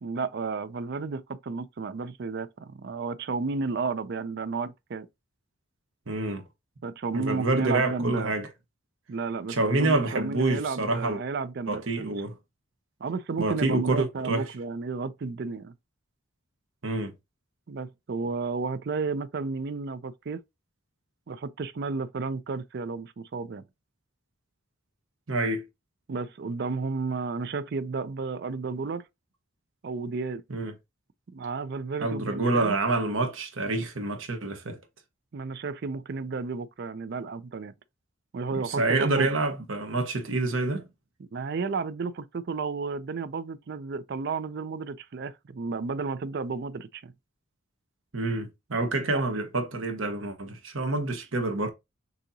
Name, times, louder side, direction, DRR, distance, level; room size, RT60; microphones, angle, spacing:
voice 1, 0.0-5.1 6.8-8.3 9.1-12.1 13.0-15.7 17.7-20.4 21.3-23.6 26.1-29.0 29.8-30.4 31.3-32.7 35.3-37.7 38.3-39.3 41.2-47.1 49.1-49.2, right 4 dB, 50° right, 0.4 m, -32 dB
voice 2, 6.1-6.4 7.1-8.5 9.5-11.2 11.7-12.3 13.4-14.5 16.8-17.1 25.3-25.6 30.5-30.7 32.0-34.8 38.5-40.8 48.1-51.7, right 2 dB, 70° right, 1.1 m, -27 dB
6.2 x 2.8 x 2.7 m
head